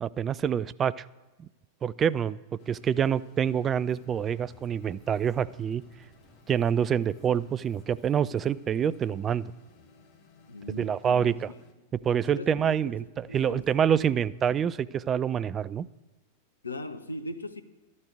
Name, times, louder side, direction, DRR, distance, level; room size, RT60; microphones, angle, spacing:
voice 1, 0.0-1.1 1.4-1.5 1.8-2.4 2.7-5.8 6.5-9.5 10.7-11.5 12.0-15.9, right 8 dB, 25° right, 0.3 m, -26 dB
sound 1, 2.6-11.7, left 3 dB, 40° left, 1.2 m, -57 dB
sound 2, 3.9-9.1, left 1 dB, ahead, 2.5 m, -61 dB
voice 2, 10.5-11.4 12.3-12.9 13.3-13.7 14.0-14.3 16.6-17.6, left 1 dB, 80° left, 0.7 m, -39 dB
12.0 x 5.3 x 8.1 m
figure-of-eight pair, 90°, 0 cm